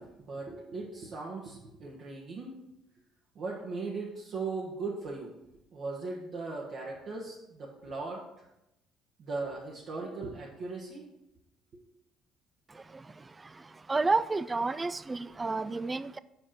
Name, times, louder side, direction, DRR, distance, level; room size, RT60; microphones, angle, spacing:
voice 1, 0.0-2.5 3.3-5.3 5.7-8.2 9.2-11.0 11.7-11.8, right 3 dB, 55° right, -4 dB, 1.2 m, -38 dB
voice 2, 13.9-16.2, right 3 dB, 25° right, 16 dB, 0.3 m, -30 dB
5.0 x 4.9 x 5.9 m, 0.89 s
hypercardioid pair, 60°, 0 cm